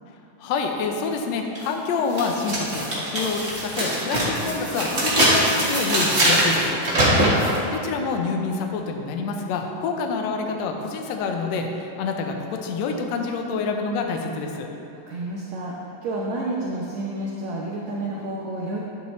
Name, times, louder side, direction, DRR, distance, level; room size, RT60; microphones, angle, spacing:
voice 1, 0.4-6.8 7.4-14.7, left 4 dB, 75° left, 3 dB, 1.6 m, -27 dB
sound 1, 1.5-1.6 2.1-7.6, right 1 dB, 30° right, 1.3 m, -22 dB
voice 2, 6.9-7.4 15.1-18.8, right 2 dB, 70° right, -4 dB, 1.8 m, -30 dB
11.0 x 9.7 x 3.2 m, 2.8 s
omnidirectional pair, 3.9 m